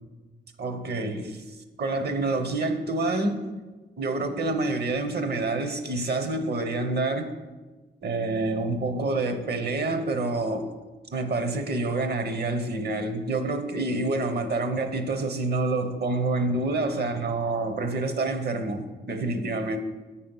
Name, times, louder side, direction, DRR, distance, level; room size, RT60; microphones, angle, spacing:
voice 1, 0.6-1.4 1.8-3.4 4.0-7.3 8.0-10.7 11.1-19.8, right 2 dB, 60° right, 0.8 m, -27 dB
8.5 x 4.3 x 5.4 m
cardioid pair, 85°, 19 cm